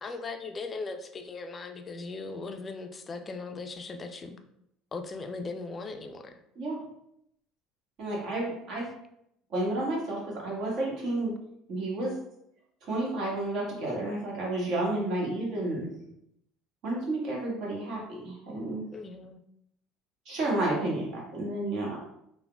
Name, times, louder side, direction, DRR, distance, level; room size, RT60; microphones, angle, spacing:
voice 1, 0.0-4.4 4.9-6.4 18.9-19.4, left 3 dB, 30° left, 7 dB, 0.3 m, -38 dB
voice 2, 8.0-8.8 9.5-11.3 11.7-12.1 12.8-15.9 16.8-18.8 20.2-22.0, right 2 dB, 60° right, -4 dB, 1.2 m, -31 dB
3.4 x 2.1 x 2.2 m, 0.77 s
supercardioid pair, 100°, 0 cm